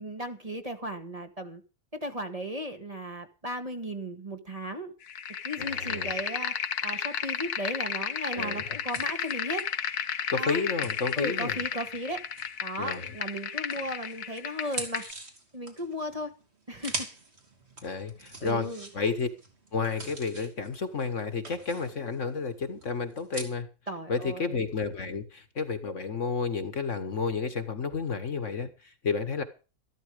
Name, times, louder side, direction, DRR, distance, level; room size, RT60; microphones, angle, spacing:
voice 1, 0.0-1.6 2.0-4.9 5.4-9.6 10.3-10.6 11.2-12.2 12.6-15.1 15.5-16.3 16.7-17.1 18.4-18.9 23.9-24.6, equal, 25° right, 1.8 m, -36 dB
sound 1, 5.1-15.1, left 8 dB, 85° left, 1.6 m, -33 dB
voice 2, 5.6-6.1 8.3-8.8 10.3-11.6 12.8-13.2 17.8-18.7 18.9-19.3 19.7-23.7 24.1-29.4, left 5 dB, 55° left, 1.8 m, -31 dB
sound 2, 8.9-13.2 13.7-23.4, right 2 dB, 45° right, 3.3 m, -44 dB
13.5 x 12.5 x 5.0 m
omnidirectional pair, 1.6 m